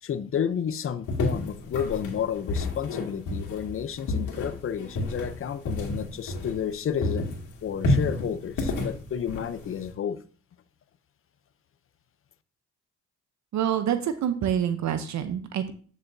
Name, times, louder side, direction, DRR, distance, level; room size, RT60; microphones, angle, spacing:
voice 1, 0.0-7.4 7.6-10.2, left 8 dB, 45° left, 13 dB, 0.7 m, -31 dB
sound 1, 1.1-6.8 7.0-9.9, left 2 dB, 80° left, 2.3 m, -30 dB
voice 2, 13.5-15.7, right 9 dB, 65° right, 9 dB, 0.8 m, -27 dB
8.9 x 6.3 x 2.7 m, 0.42 s
cardioid pair, 90°, 30 cm